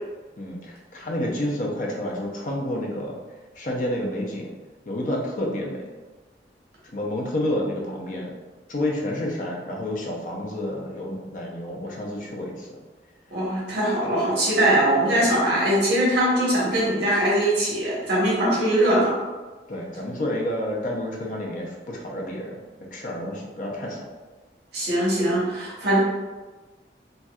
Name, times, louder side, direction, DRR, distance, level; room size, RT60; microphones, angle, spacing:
voice 1, 0.4-3.2 3.6-4.5 4.9-5.8 6.9-8.3 8.7-12.7 15.1-15.3 19.7-22.6 22.9-24.0, left 1 dB, 45° left, -1 dB, 0.6 m, -29 dB
voice 2, 13.3-19.1 24.7-26.0, right 1 dB, 75° right, -7 dB, 1.2 m, -21 dB
4.1 x 2.5 x 2.3 m, 1.3 s
head